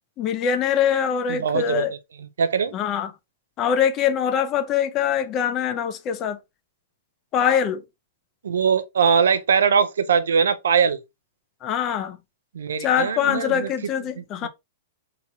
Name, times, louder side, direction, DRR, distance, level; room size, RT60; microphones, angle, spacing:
voice 1, 0.2-1.9 2.7-3.1 3.6-6.4 7.3-7.8 11.6-12.2 12.8-14.5, left 8 dB, 35° left, 0.5 m, -23 dB
voice 2, 1.3-1.9 2.2-2.7 8.4-11.0 12.5-13.7 14.4-14.5, right 6 dB, 85° right, 0.4 m, -21 dB
2.9 x 2.8 x 2.3 m
hypercardioid pair, 125°, 0 cm